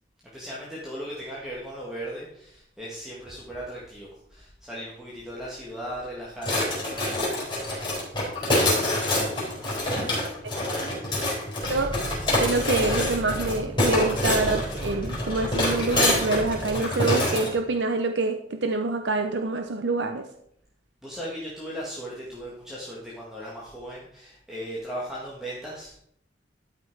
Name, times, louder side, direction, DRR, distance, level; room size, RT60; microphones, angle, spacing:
voice 1, 0.3-7.3 11.0-11.1 21.0-25.9, equal, 5° right, -6 dB, 1.9 m, -37 dB
sound 1, 6.4-17.5, left 1 dB, 25° left, 4.3 m, -26 dB
sound 2, 11.6-16.8, right 1 dB, 25° right, 0.7 m, -36 dB
voice 2, 11.6-12.0 12.4-20.3, right 3 dB, 75° right, 6 dB, 0.7 m, -26 dB
12.0 x 6.0 x 4.7 m, 0.71 s
head